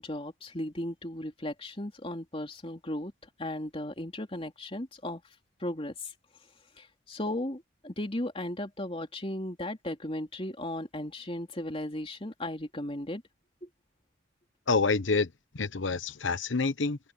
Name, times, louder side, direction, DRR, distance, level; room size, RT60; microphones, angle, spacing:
voice 1, 0.0-3.1 3.4-5.2 5.6-5.9 7.1-13.2, left 1 dB, 30° left, 3.1 m, -36 dB
voice 2, 14.7-15.3 15.5-17.0, left 4 dB, 80° left, 1.0 m, -27 dB
head